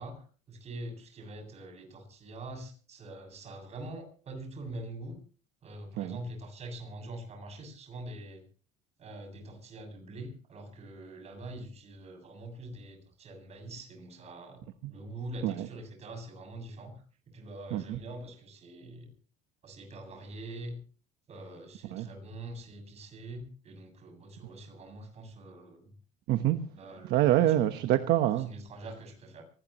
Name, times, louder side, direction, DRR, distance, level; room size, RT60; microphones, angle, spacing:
voice 1, 0.0-5.2 5.6-8.4 9.0-14.6 14.9-19.1 19.6-20.8 21.3-25.9 26.8-27.4 27.7-27.9 28.4-29.4, right 1 dB, 35° right, 7.5 m, -44 dB
voice 2, 26.3-26.6 27.1-28.5, right 13 dB, 65° right, 1.2 m, -26 dB
24.5 x 18.5 x 3.1 m
cardioid pair, 140°, 18 cm